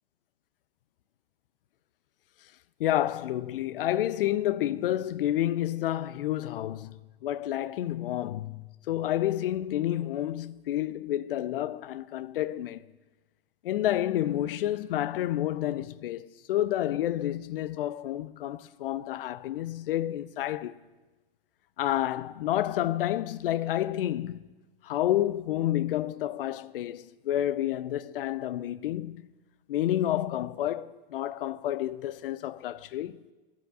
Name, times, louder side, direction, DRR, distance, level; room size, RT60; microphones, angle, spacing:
voice 1, 2.8-12.9 13.6-20.7 21.8-24.5 24.8-29.3 29.7-33.2, left 13 dB, 65° left, 0.5 m, -29 dB
10.0 x 5.6 x 6.6 m
hypercardioid pair, 130°, 30 cm